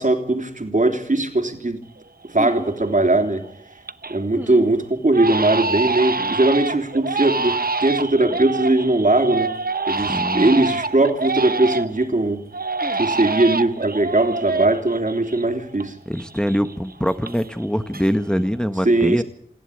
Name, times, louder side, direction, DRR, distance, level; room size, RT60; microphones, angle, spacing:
voice 1, 0.0-1.8 2.3-3.4 4.1-9.5 9.9-12.4 13.0-15.9 18.8-19.2, right 2 dB, 55° right, 5 dB, 3.4 m, -19 dB
Crying sobbing, 2.0-2.1 2.5-3.0 3.4-4.2 4.5-4.7 5.1-12.1 12.5-15.9 16.1-17.6 17.9-18.5, right 3 dB, 75° right, 0.8 m, -26 dB
sound 1, 2.4-2.7 4.3-4.7 6.2-6.4 8.2-8.4 10.3-10.7 12.8-13.0, equal, 10° right, 2.0 m, -33 dB
voice 2, 9.9-10.5 16.1-19.2, equal, 5° left, 9 dB, 1.3 m, -23 dB
28.0 x 11.0 x 9.8 m, 0.66 s
wide cardioid pair, 45°, 15 cm